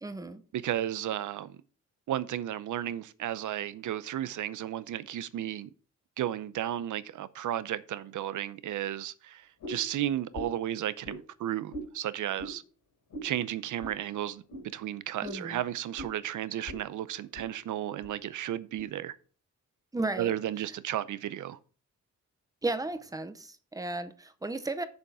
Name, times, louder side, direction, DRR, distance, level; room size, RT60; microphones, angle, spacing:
voice 1, 0.0-0.4 15.2-15.6 19.9-20.3 22.6-24.9, right 2 dB, 10° right, 0.6 m, -34 dB
voice 2, 0.5-1.6 2.1-5.7 6.2-12.6 13.2-14.4 14.7-19.1 20.2-21.6, right 12 dB, 75° right, 0.7 m, -33 dB
sound 1, 9.6-9.9 10.3-10.6 11.0-11.2 11.7-11.9 12.4-12.6 13.1-13.3 13.8-14.0 14.5-14.6 15.2-15.4 15.9-16.1 16.6-16.8 17.1-17.5 18.0-18.2 18.8-18.9, equal, 90° left, 3.7 m, -40 dB
7.9 x 7.0 x 4.8 m
wide cardioid pair, 170°, 30 cm